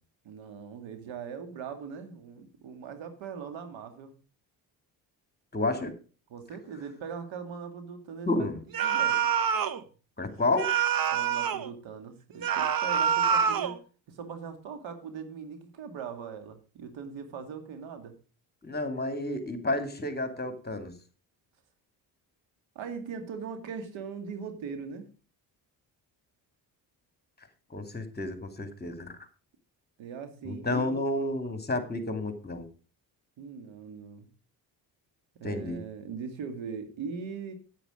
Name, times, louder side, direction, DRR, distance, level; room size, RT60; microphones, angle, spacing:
voice 1, 0.2-4.1 5.7-5.8 6.3-8.5 8.8-9.3 11.1-13.8 14.1-18.1 22.8-25.0 30.0-31.0 33.4-34.3 35.4-37.5, right 6 dB, 75° right, 7 dB, 2.3 m, -40 dB
voice 2, 5.5-5.9 8.3-8.6 10.2-10.7 18.6-20.9 27.7-29.2 30.4-32.7 35.4-35.8, left 2 dB, 20° left, 8 dB, 2.5 m, -30 dB
sound 1, 8.7-9.8 10.6-11.7 12.4-13.8, right 8 dB, 45° right, 1.2 m, -26 dB
9.8 x 9.1 x 5.0 m, 0.36 s
supercardioid pair, 70°, 46 cm